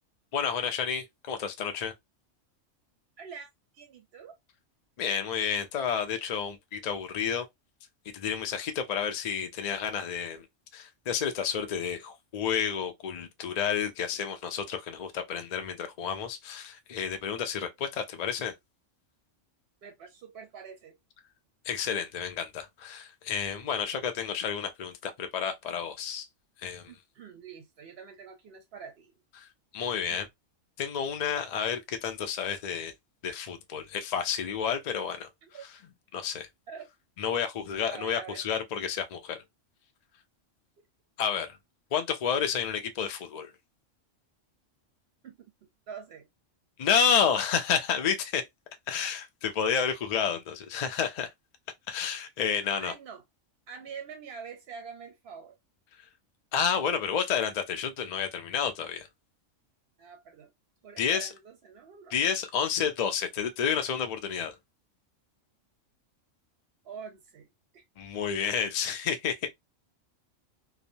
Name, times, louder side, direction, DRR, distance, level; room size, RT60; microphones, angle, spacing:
voice 1, 0.3-1.9 5.0-7.5 8.1-10.5 10.7-18.5 21.6-26.3 26.6-26.9 29.4-29.5 29.7-30.3 30.8-32.9 33.2-35.3 36.1-36.5 37.2-39.4 41.2-41.6 41.9-43.5 46.8-48.4 48.9-51.3 51.9-52.9 56.5-59.1 61.0-61.3 62.1-64.5 68.0-69.5, left 7 dB, 75° left, 0.3 m, -30 dB
voice 2, 3.2-3.5 3.7-4.4 19.8-21.0 26.9-29.1 30.1-30.2 35.4-35.6 36.7-36.9 37.9-38.4 45.2-46.3 52.8-53.2 53.7-55.6 60.0-60.5 60.8-62.2 66.8-67.8, right 6 dB, 60° right, 0.7 m, -45 dB
2.9 x 2.0 x 2.5 m
omnidirectional pair, 1.3 m